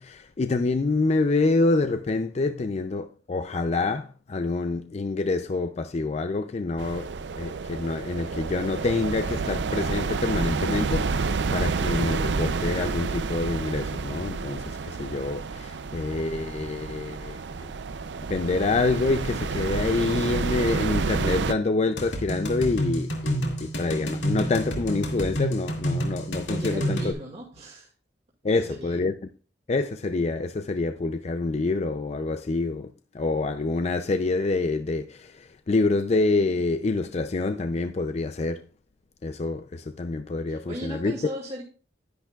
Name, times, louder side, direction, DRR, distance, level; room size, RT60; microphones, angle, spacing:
voice 1, 0.0-17.7 18.3-27.1 28.4-29.1 29.7-38.7 39.2-41.2, left 3 dB, 40° left, 0.4 m, -27 dB
sound 1, 6.8-21.5, right 4 dB, 75° right, 0.5 m, -29 dB
sound 2, 22.0-27.1, equal, 85° left, 2.2 m, -29 dB
voice 2, 26.5-27.9 28.4-29.0 40.5-41.6, right 1 dB, 40° right, 2.1 m, -37 dB
11.0 x 10.0 x 2.4 m
head